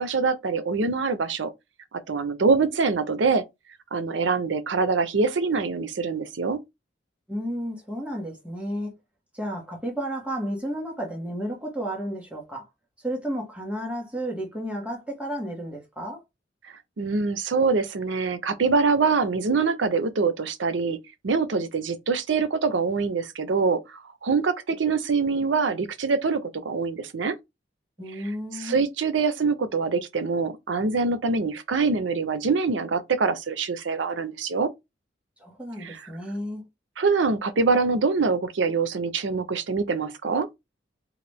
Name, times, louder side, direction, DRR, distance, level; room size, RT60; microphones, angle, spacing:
voice 1, 0.0-1.5 2.1-3.4 3.9-6.6 17.0-21.0 21.2-27.4 28.6-34.7 35.8-36.0 37.0-40.5, right 4 dB, 85° right, 0.6 m, -24 dB
voice 2, 7.3-8.9 9.3-12.7 13.0-16.2 28.0-28.8 35.4-36.7, equal, 5° right, 1.4 m, -32 dB
3.9 x 2.5 x 3.3 m
head